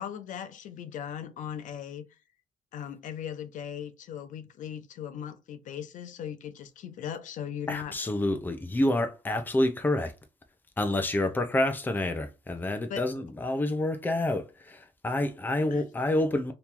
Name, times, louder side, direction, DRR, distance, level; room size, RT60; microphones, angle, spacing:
voice 1, 0.0-2.1 2.7-8.0 12.9-13.1 15.7-15.8, left 9 dB, 85° left, 0.6 m, -38 dB
voice 2, 7.7-10.1 10.8-16.5, left 1 dB, 15° left, 0.6 m, -28 dB
3.0 x 2.7 x 3.6 m
cardioid pair, 140°, 13 cm